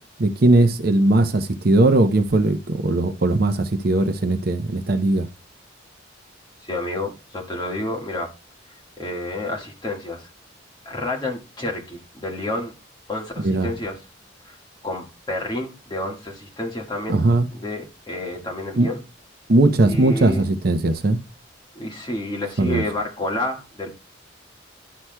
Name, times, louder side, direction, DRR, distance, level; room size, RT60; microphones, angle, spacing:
voice 1, 0.2-5.3 13.4-13.7 17.1-17.5 18.8-18.9 19.5-21.2 22.6-22.8, right 2 dB, 55° right, 0.7 m, -19 dB
voice 2, 6.6-8.3 9.0-10.3 10.9-12.7 13.1-14.0 14.4-14.6 14.8-17.2 17.5-19.0 19.9-20.5 21.8-23.9, left 1 dB, 25° left, 1.6 m, -29 dB
11.0 x 6.0 x 2.2 m
head